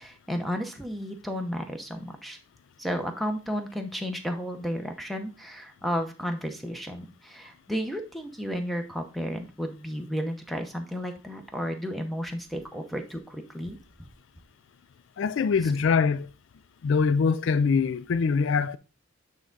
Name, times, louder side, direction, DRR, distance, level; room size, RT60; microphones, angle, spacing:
voice 1, 0.0-2.4 2.8-13.8, equal, ahead, 0.7 m, -33 dB
voice 2, 15.2-16.3 16.8-18.8, left 5 dB, 60° left, 0.3 m, -23 dB
8.8 x 3.5 x 3.9 m
head